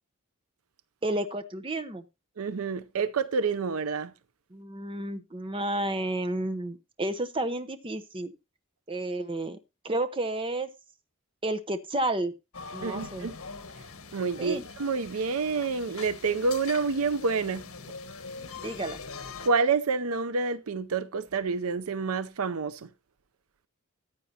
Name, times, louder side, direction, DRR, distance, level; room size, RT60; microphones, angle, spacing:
voice 1, 1.0-2.0 4.5-8.3 8.9-9.6 9.8-10.7 11.4-12.3 12.7-13.3 14.4-14.6 18.6-19.0, right 1 dB, 25° right, 0.8 m, -31 dB
voice 2, 2.4-4.1 12.8-13.4 14.1-17.6 19.4-22.9, right 4 dB, 80° right, 0.6 m, -28 dB
sound 1, 12.5-19.5, left 4 dB, 75° left, 1.5 m, -43 dB
14.5 x 9.0 x 2.8 m
head